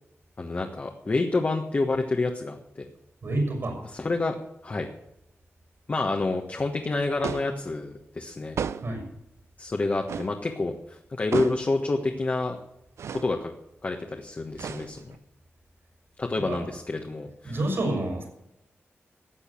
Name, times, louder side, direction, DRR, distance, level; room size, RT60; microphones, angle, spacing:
voice 1, 0.4-2.9 3.8-4.3 4.6-4.9 5.9-8.6 9.6-12.6 13.1-13.5 13.8-15.2 16.2-17.6, left 3 dB, 35° left, 2 dB, 1.5 m, -28 dB
voice 2, 3.2-3.8 8.8-9.1 16.5-16.6 17.4-18.3, right 1 dB, 60° right, 2 dB, 6.1 m, -28 dB
sound 1, 7.2-7.6 8.6-9.0 10.1-10.4 11.3-11.7 13.0-13.3 14.5-15.2, right 7 dB, 90° right, 0.6 m, -33 dB
14.5 x 8.4 x 8.5 m, 0.83 s
wide cardioid pair, 110°, 5 cm